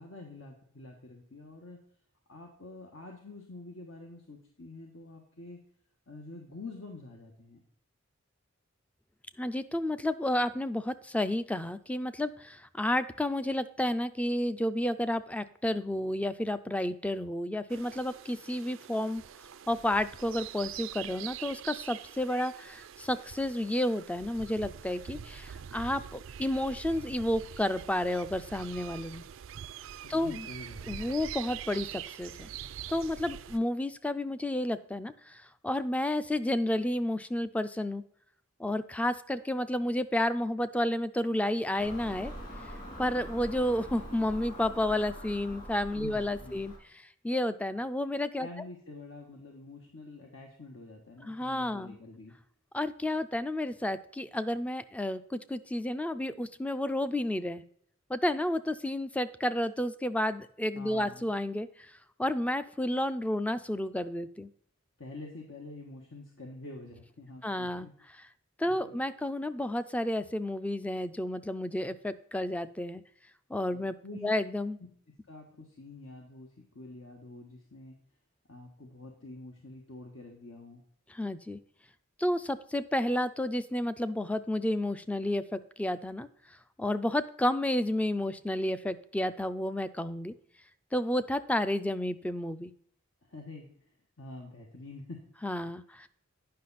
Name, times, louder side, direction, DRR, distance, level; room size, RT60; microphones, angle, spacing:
voice 1, 0.0-1.8 2.3-5.6 6.1-7.6 30.0-31.1 45.9-46.6 48.4-52.3 60.7-61.3 65.0-67.9 68.6-69.0 73.7-74.3 75.3-77.9 78.5-80.8 93.2-93.9 94.2-95.3, left 2 dB, 75° left, 1 dB, 1.3 m, -47 dB
voice 2, 9.4-19.2 19.7-29.2 30.1-30.5 30.9-32.5 32.9-38.0 38.6-42.3 43.0-46.7 47.2-48.5 51.2-52.0 52.7-57.6 58.1-61.9 62.2-64.5 67.4-67.9 68.6-73.0 73.5-74.0 74.2-74.8 81.1-81.6 82.2-86.3 86.8-90.3 90.9-92.7 95.4-96.1, left 1 dB, 5° left, 13 dB, 0.4 m, -31 dB
sound 1, 17.7-33.6, right 9 dB, 65° right, 0.4 m, -44 dB
Car passing by / Engine, 41.8-46.8, equal, 40° left, 2.7 m, -44 dB
9.4 x 5.7 x 4.1 m, 0.64 s
head